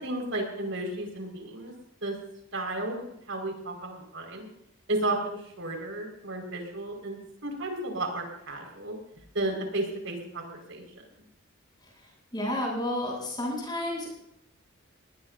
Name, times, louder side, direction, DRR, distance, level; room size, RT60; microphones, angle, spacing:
voice 1, 0.0-1.7 2.0-2.1 2.5-3.0 3.3-4.5 4.9-8.9 9.3-10.8, right 2 dB, 70° right, 2 dB, 5.1 m, -33 dB
voice 2, 12.3-14.1, left 1 dB, 20° left, -2 dB, 7.9 m, -30 dB
21.0 x 20.0 x 2.7 m, 0.79 s
head